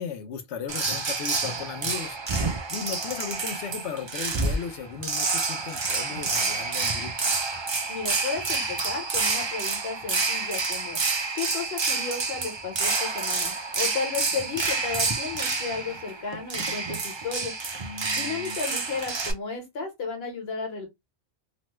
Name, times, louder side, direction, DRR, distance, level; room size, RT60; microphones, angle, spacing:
voice 1, 0.0-2.4 2.7-7.1 14.3-14.5 17.8-18.6, left 7 dB, 90° left, 1.0 m, -36 dB
sound 1, 0.7-19.3, right 4 dB, 40° right, 0.4 m, -28 dB
voice 2, 7.9-11.0 11.3-17.5 18.1-20.9, left 5 dB, 65° left, 1.3 m, -33 dB
3.1 x 2.1 x 3.0 m
omnidirectional pair, 1.1 m